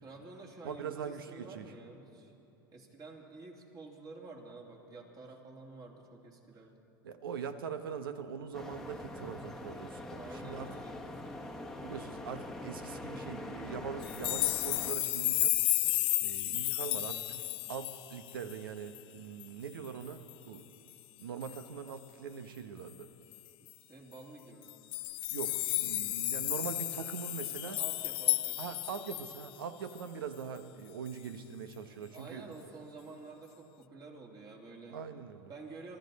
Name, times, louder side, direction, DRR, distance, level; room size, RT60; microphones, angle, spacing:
voice 1, 0.0-2.3 2.7-6.7 10.1-11.1 23.8-24.8 27.6-28.7 32.1-35.0 35.5-36.0, right 3 dB, 35° right, 0 dB, 2.8 m, -50 dB
voice 2, 0.6-1.7 7.0-10.7 11.8-15.6 16.2-20.6 21.2-23.1 25.3-27.8 28.6-32.5 34.9-35.5, right 6 dB, 90° right, 10 dB, 1.0 m, -42 dB
sound 1, 8.5-14.9, left 1 dB, 5° left, 1.2 m, -43 dB
sound 2, 14.0-18.6 19.0-19.1 19.4-19.5 19.8-20.3 21.4-21.6 23.3-23.4 23.7-23.8 24.6-29.5 30.0-30.1, left 18 dB, 50° left, 0.4 m, -33 dB
25.0 x 13.5 x 4.1 m, 3.0 s
hypercardioid pair, 100°, 12 cm